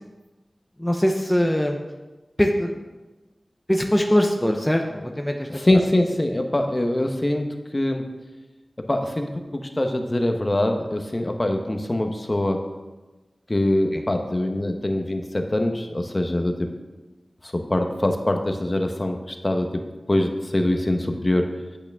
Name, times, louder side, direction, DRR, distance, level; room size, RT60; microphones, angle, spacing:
voice 1, 0.8-1.8 2.4-2.7 3.7-5.5 13.9-14.0, equal, 10° left, 3 dB, 0.7 m, -21 dB
voice 2, 5.5-8.1 8.8-12.6 13.5-16.7 17.4-21.5, left 1 dB, 30° left, 4 dB, 1.0 m, -23 dB
8.5 x 8.3 x 3.6 m, 1.2 s
wide cardioid pair, 65°, 0 cm